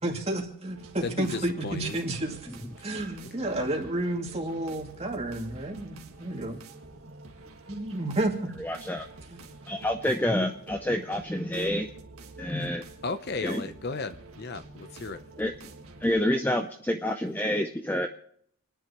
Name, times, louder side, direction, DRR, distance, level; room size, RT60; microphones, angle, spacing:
voice 1, 0.0-2.4 2.8-6.6 7.7-8.3 9.3-9.4, right 1 dB, 30° right, 0 dB, 2.4 m, -31 dB
sound 1, 0.7-16.2, right 2 dB, 80° right, 1.7 m, -48 dB
voice 2, 1.0-2.0 2.3-2.4 2.8-2.9 13.0-15.2, left 3 dB, 45° left, 11 dB, 0.7 m, -35 dB
voice 3, 8.6-9.1 9.7-11.9 12.4-12.8 13.4-13.6 15.4-15.5 16.0-18.1, left 1 dB, 10° left, 5 dB, 0.5 m, -28 dB
29.5 x 10.5 x 3.0 m, 0.68 s
head